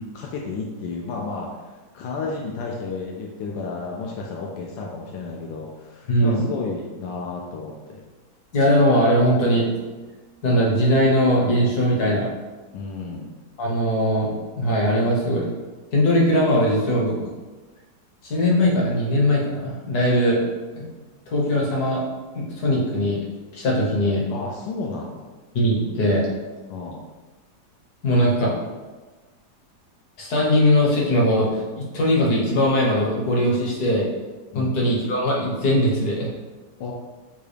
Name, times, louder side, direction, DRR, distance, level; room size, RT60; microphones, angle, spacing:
voice 1, 0.1-8.0 12.7-13.3 24.3-25.3 26.7-27.0 34.5-34.8 36.8-36.9, left 4 dB, 85° left, -1 dB, 1.3 m, -32 dB
voice 2, 6.1-6.4 8.5-9.7 10.4-12.3 13.6-15.4 15.9-17.2 18.2-20.4 20.7-20.9 21.3-22.0 22.3-23.2 23.5-24.2 25.5-26.2 28.0-28.6 30.2-34.0 34.5-36.3, equal, 60° left, -3 dB, 1.5 m, -20 dB
6.6 x 2.3 x 3.3 m, 1.3 s
omnidirectional pair, 1.9 m